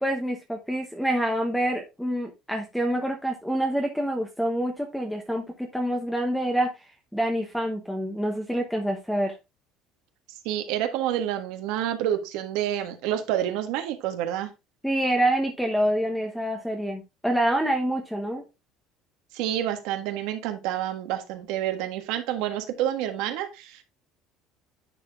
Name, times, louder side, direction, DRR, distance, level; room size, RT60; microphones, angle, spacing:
voice 1, 0.0-9.4 14.8-18.5, right 1 dB, ahead, 0.9 m, -27 dB
voice 2, 10.4-14.5 19.3-23.8, right 11 dB, 75° right, 1.5 m, -28 dB
9.8 x 4.4 x 3.5 m
cardioid pair, 165°, 0 cm